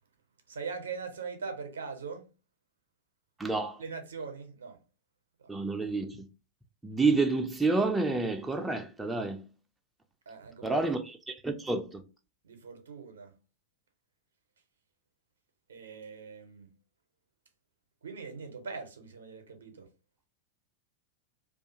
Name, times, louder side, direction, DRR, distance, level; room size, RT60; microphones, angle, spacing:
voice 1, 0.5-2.3 3.8-4.8 10.3-11.1 12.4-13.3 15.7-16.7 18.0-19.9, right 5 dB, 70° right, 0.5 m, -41 dB
voice 2, 3.4-3.8 5.5-6.3 6.8-9.4 10.6-12.0, right 3 dB, 10° right, 0.3 m, -29 dB
2.3 x 2.3 x 2.7 m
figure-of-eight pair, 90°, 0 cm